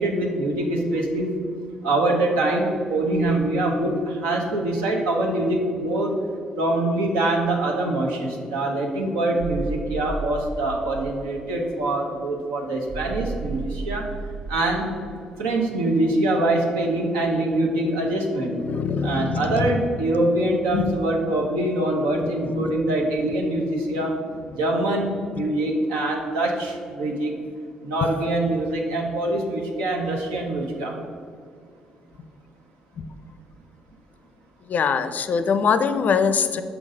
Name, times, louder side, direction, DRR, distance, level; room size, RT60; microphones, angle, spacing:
voice 1, 0.0-1.3 1.8-6.1 6.6-14.0 14.5-14.9 15.4-18.6 19.0-24.2 24.5-27.3 27.8-30.9, right 1 dB, 80° right, 0 dB, 0.9 m, -24 dB
sound 1, 9.4-11.2 12.9-14.8, right 3 dB, 55° right, 0.5 m, -33 dB
voice 2, 18.5-19.8 20.7-20.9 22.2-22.7 24.3-24.6 25.4-25.5 28.0-28.1 33.0-33.1 34.7-36.6, left 6 dB, 50° left, 11 dB, 0.4 m, -24 dB
5.8 x 3.9 x 5.1 m, 2.2 s
hypercardioid pair, 50°, 3 cm